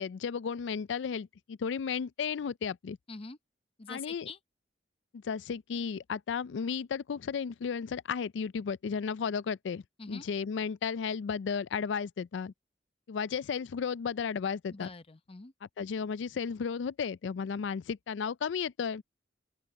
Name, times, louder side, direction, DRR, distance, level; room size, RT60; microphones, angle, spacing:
voice 1, 0.0-3.0 3.9-4.3 5.1-12.5 13.1-14.9 15.6-19.0, left 6 dB, 80° left, 0.4 m, -34 dB
voice 2, 3.8-4.4 10.0-10.3 14.7-15.5, left 3 dB, 30° left, 0.7 m, -44 dB
open air
head